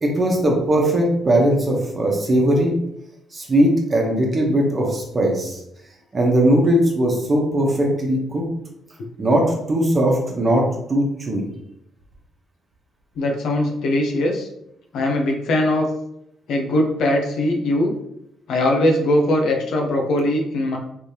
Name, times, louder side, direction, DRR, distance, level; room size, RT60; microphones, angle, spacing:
voice 1, 0.0-2.8 3.3-5.6 6.1-8.4 9.2-10.6 10.9-11.4, right 1 dB, 30° right, 0 dB, 1.0 m, -19 dB
voice 2, 13.2-14.5 14.9-15.9 16.5-17.9 18.5-20.8, left 1 dB, 75° left, 1 dB, 0.7 m, -20 dB
3.3 x 3.3 x 2.8 m, 0.79 s
cardioid pair, 90°, 0 cm